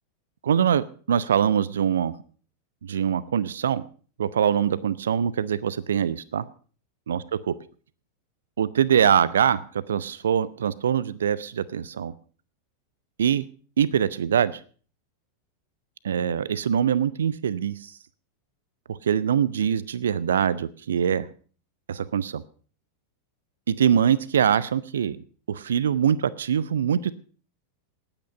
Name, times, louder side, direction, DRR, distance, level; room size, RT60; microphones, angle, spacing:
voice 1, 0.4-2.1 2.8-3.8 4.2-6.4 7.1-7.5 8.6-12.1 13.2-13.4 13.8-14.6 16.0-17.9 18.9-21.3 21.9-22.4 23.7-25.2 25.5-27.1, right 8 dB, 65° right, 20 dB, 0.6 m, -23 dB
19.0 x 9.0 x 5.4 m, 0.42 s
figure-of-eight pair, 90°, 0 cm